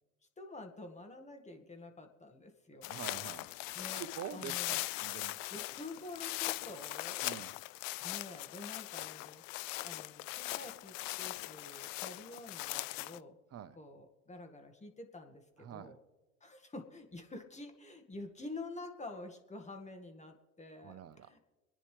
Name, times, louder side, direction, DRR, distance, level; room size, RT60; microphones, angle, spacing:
voice 1, 0.4-2.9 3.7-4.1 4.3-4.9 5.5-7.3 8.0-9.4 9.8-13.4 13.7-16.0 16.4-21.4, left 2 dB, 15° left, 5 dB, 1.9 m, -48 dB
sound 1, 2.8-13.2, left 20 dB, 70° left, 0.5 m, -40 dB
voice 2, 2.9-3.4 4.0-5.4 7.2-7.5 13.5-13.8 15.6-15.9 20.8-21.3, right 9 dB, 35° right, 12 dB, 1.0 m, -46 dB
26.0 x 10.0 x 3.4 m, 1.1 s
hypercardioid pair, 85°, 41 cm